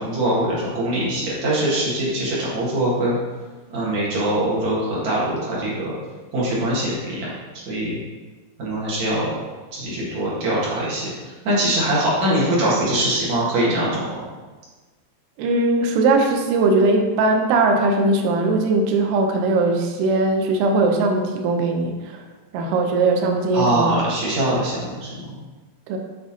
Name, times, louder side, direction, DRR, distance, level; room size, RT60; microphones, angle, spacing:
voice 1, 0.0-3.2 3.7-5.9 6.3-7.3 7.7-8.0 8.6-9.3 9.7-14.2 23.5-25.3, right 1 dB, 50° right, -7 dB, 2.7 m, -22 dB
voice 2, 15.4-22.2 22.5-24.0 25.9-26.0, right 3 dB, 80° right, 3 dB, 2.6 m, -19 dB
9.4 x 3.8 x 4.3 m, 1.3 s
omnidirectional pair, 4.9 m